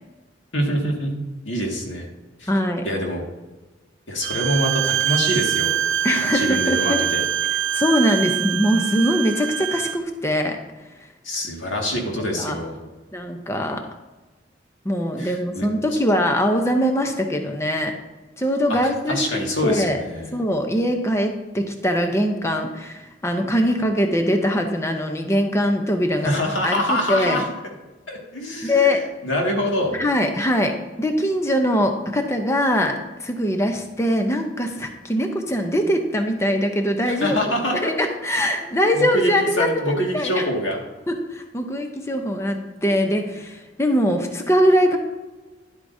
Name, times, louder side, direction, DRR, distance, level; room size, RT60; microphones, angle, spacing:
voice 1, 0.5-1.1 1.5-2.1 2.4-2.5 2.8-3.2 4.1-5.7 6.3-7.2 11.2-12.8 15.2-15.7 18.7-18.8 19.1-20.4 26.2-27.5 28.1-28.9 29.2-30.0 37.1-37.9 38.6-40.8, equal, 85° left, 0 dB, 2.0 m, -25 dB
voice 2, 2.5-2.9 6.0-7.0 7.7-10.6 12.4-12.6 13.1-13.8 14.8-17.9 18.4-20.0 20.3-26.3 26.6-27.4 28.6-29.0 29.9-37.4 37.8-40.5 41.1-45.0, equal, 15° left, 4 dB, 0.7 m, -22 dB
Bowed string instrument, 4.2-10.0, right 10 dB, 85° right, 0.4 m, -24 dB
11.0 x 8.1 x 2.7 m, 1.2 s
head